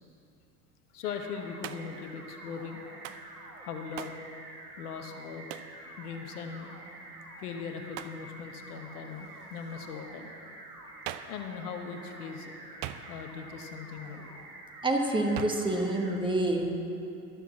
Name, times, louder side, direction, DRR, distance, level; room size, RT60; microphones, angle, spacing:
voice 1, 0.9-2.8 3.6-4.1 4.8-5.5 6.0-6.7 7.4-10.3 11.2-12.5 13.1-14.2, left 6 dB, 70° left, 5 dB, 1.2 m, -40 dB
sound 1, 1.0-16.2, right 2 dB, 85° right, 1.5 m, -48 dB
Hands, 1.6-2.0 3.0-3.3 4.0-4.2 5.5-5.8 7.9-8.2 11.0-11.4 12.8-13.4 15.3-15.7, right 12 dB, 55° right, 0.6 m, -40 dB
voice 2, 14.8-16.8, right 1 dB, 10° right, 2 dB, 1.3 m, -27 dB
12.5 x 7.2 x 7.1 m, 2.7 s
figure-of-eight pair, 80°, 46 cm